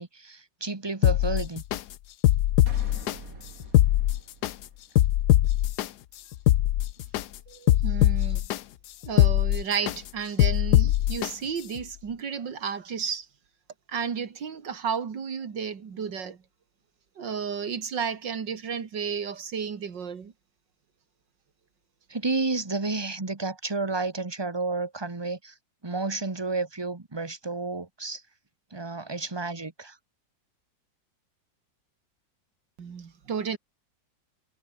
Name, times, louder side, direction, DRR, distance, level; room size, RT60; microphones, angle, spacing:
voice 1, 0.0-1.6 22.1-25.5 25.8-28.2 28.7-30.0, right 3 dB, 15° right, 1.2 m, -31 dB
sound 1, 1.0-1.8 2.2-3.1 3.6-4.5 5.0-5.9 6.3-7.2 7.7-8.6 9.0-10.0 10.4-11.3 11.8-11.9, left 13 dB, 70° left, 1.2 m, -21 dB
sound 2, 2.7-5.2, right 3 dB, 45° right, 4.5 m, -46 dB
voice 2, 7.5-8.4 9.1-13.3 13.9-16.4 17.2-20.3 32.8-33.6, right 6 dB, 70° right, 2.8 m, -32 dB
omnidirectional pair, 2.0 m